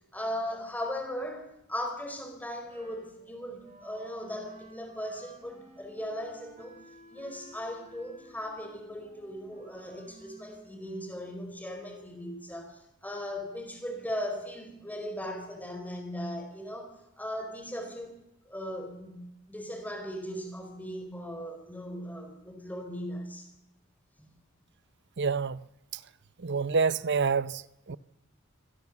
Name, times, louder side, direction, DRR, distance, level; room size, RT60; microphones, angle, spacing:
voice 1, 0.1-6.8 7.1-18.1 18.5-19.2 19.5-23.5 24.2-24.3, equal, 10° left, 4.2 m, -38 dB
Wind instrument woodwind instrument, 2.6-12.1, equal, 35° right, 6.1 m, -55 dB
voice 2, 25.2-25.6 26.4-27.6 27.9-28.0, right 5 dB, 55° right, 0.7 m, -27 dB
25.0 x 17.0 x 7.2 m
head